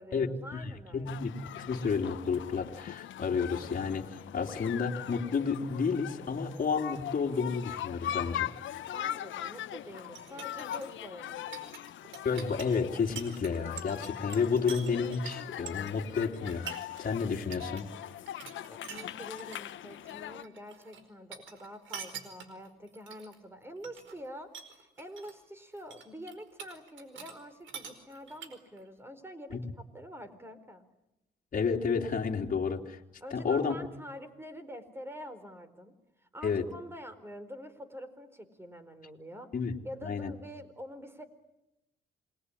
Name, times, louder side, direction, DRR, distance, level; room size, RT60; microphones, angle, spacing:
voice 1, 0.0-1.2 8.9-11.8 18.7-30.8 33.2-35.9 36.2-39.5 39.8-41.2, equal, 10° right, 11 dB, 4.3 m, -46 dB
voice 2, 0.5-8.5 12.2-16.7 17.0-17.9 31.5-33.0 33.3-33.8 36.4-36.7 39.5-39.7 40.0-40.3, left 5 dB, 45° left, 1 dB, 3.2 m, -31 dB
sound 1, 1.1-20.4, left 11 dB, 75° left, 1.1 m, -41 dB
sound 2, 10.0-17.1 17.3-17.8 18.1-19.6 19.9-21.0 21.3-23.4 23.8-24.2 24.5-25.4 25.7-27.4 27.6-28.8, right 7 dB, 75° right, 4.7 m, -45 dB
28.0 x 21.5 x 9.9 m, 0.94 s
cardioid pair, 90°, 20 cm